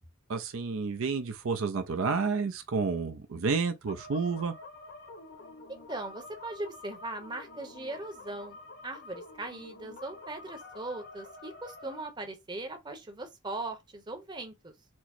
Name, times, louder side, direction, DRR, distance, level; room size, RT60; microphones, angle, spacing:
voice 1, 0.3-4.5, right 4 dB, 70° right, 0.5 m, -30 dB
sound 1, 3.9-12.0, left 2 dB, 55° left, 1.0 m, -48 dB
voice 2, 5.7-8.6 8.8-14.7, right 2 dB, 20° right, 0.8 m, -39 dB
4.5 x 2.0 x 4.2 m
head